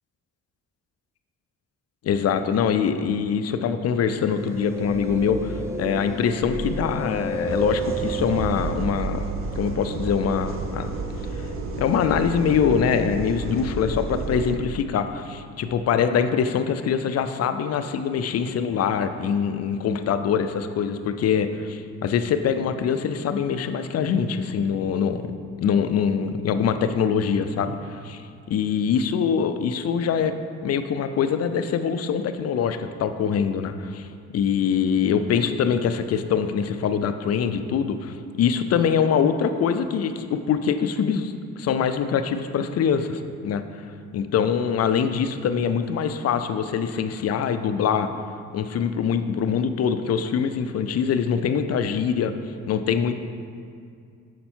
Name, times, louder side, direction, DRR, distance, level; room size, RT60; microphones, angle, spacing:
voice 1, 2.0-9.2 9.6-10.9 11.8-25.3 25.6-30.3 30.6-34.1 34.3-43.6 44.1-48.1 48.5-52.3 52.7-53.1, left 7 dB, 55° left, 9 dB, 0.5 m, -24 dB
sound 1, 4.1-8.8, right 2 dB, 10° right, 0.7 m, -30 dB
sound 2, 7.5-14.5, right 3 dB, 45° right, 0.8 m, -31 dB
6.6 x 5.6 x 4.4 m, 2.3 s
cardioid pair, 90°, 30 cm